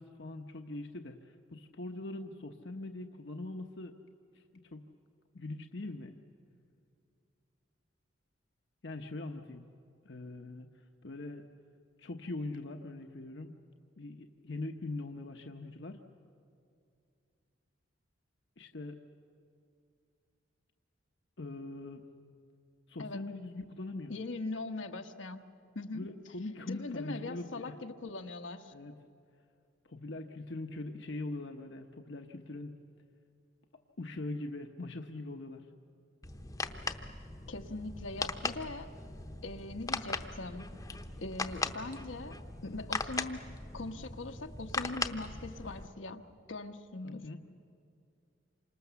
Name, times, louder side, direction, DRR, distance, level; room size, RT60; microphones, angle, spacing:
voice 1, 0.0-4.0 4.3-4.4 4.7-4.8 5.3-6.2 8.8-9.7 10.0-10.7 11.0-11.4 12.0-13.5 14.0-16.1 18.6-19.0 21.4-22.1 22.9-24.2 25.9-27.8 28.7-28.9 29.8-32.7 34.0-35.7 47.0-47.4, left 2 dB, 65° left, 5 dB, 1.0 m, -42 dB
voice 2, 24.1-25.4 25.7-26.1 26.7-28.7 37.5-38.9 39.4-40.7 41.2-43.4 43.7-47.3, left 2 dB, 80° left, 6 dB, 1.3 m, -41 dB
sound 1, 36.2-45.9, left 3 dB, 20° left, 0.8 m, -39 dB
28.5 x 26.0 x 7.0 m, 2.4 s
head